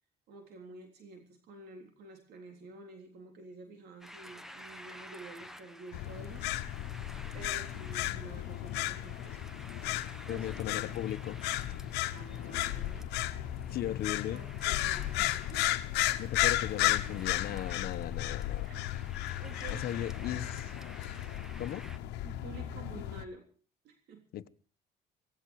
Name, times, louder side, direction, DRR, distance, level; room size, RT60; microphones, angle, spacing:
voice 1, 0.3-6.5 7.3-9.6 10.3-10.5 12.1-13.0 13.7-13.9 14.3-16.1 18.7-18.8 19.4-20.0 20.2-20.4 22.2-23.5 23.8-24.2, right 3 dB, 70° right, 4 dB, 3.6 m, -50 dB
sound 1, 4.0-22.0, equal, ahead, 1.5 m, -52 dB
sound 2, 5.9-23.2, left 15 dB, 85° left, 1.2 m, -34 dB
voice 2, 10.3-11.4 13.7-14.4 16.2-18.7 19.7-20.7 21.6-21.9 24.3-24.5, left 12 dB, 65° left, 12 dB, 1.2 m, -37 dB
18.0 x 16.5 x 4.8 m, 0.41 s
cardioid pair, 110°, 17 cm